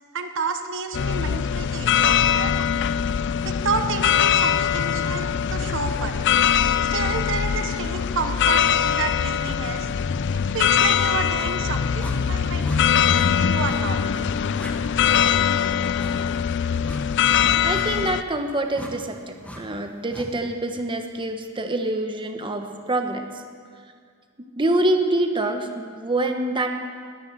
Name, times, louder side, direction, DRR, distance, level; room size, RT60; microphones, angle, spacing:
voice 1, 0.1-2.6 3.4-6.2 6.9-9.9 10.5-12.6 13.4-14.0, right 5 dB, 60° right, 7 dB, 0.9 m, -30 dB
sound 1, 0.9-18.2, left 8 dB, 55° left, 0.4 m, -22 dB
sound 2, 11.3-11.5 12.0-12.2 12.6-12.8 13.1-13.3 13.6-13.8 14.1-14.3 14.6-14.7 15.1-15.3 16.0-16.1 16.9-17.0 17.7-17.9 18.7-18.9 19.4-19.6 20.1-20.3, equal, 5° left, 1.5 m, -37 dB
voice 2, 17.4-23.2 24.6-26.8, right 1 dB, 20° right, 5 dB, 1.1 m, -26 dB
20.0 x 9.6 x 7.4 m, 2.1 s
head